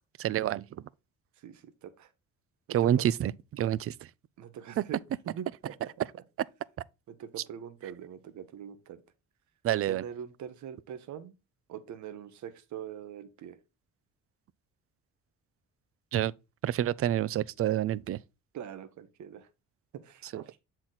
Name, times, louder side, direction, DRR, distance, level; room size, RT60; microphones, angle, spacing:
voice 1, 0.2-0.7 2.7-3.9 4.8-4.9 9.6-10.0 16.1-16.3 16.6-18.2 20.3-20.4, right 11 dB, 50° right, 0.4 m, -28 dB
voice 2, 1.4-2.1 2.7-2.9 4.4-5.0 5.2-6.2 7.1-9.0 9.9-11.3 11.7-13.6 18.5-19.5 20.0-20.6, right 9 dB, 70° right, 1.0 m, -43 dB
7.4 x 4.4 x 4.0 m
cardioid pair, 90°, 30 cm